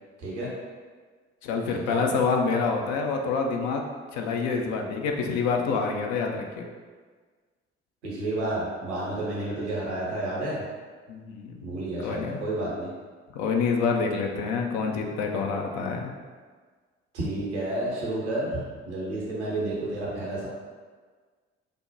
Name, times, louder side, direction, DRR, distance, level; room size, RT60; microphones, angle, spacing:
voice 1, 0.2-0.5 1.7-2.0 8.0-10.6 11.6-12.9 17.1-20.5, right 1 dB, 80° right, -5 dB, 0.7 m, -31 dB
voice 2, 1.4-3.8 4.1-6.6 11.1-12.4 13.3-16.1, left 5 dB, 55° left, 2 dB, 0.5 m, -27 dB
3.4 x 2.1 x 2.7 m, 1.5 s
figure-of-eight pair, 40°, 34 cm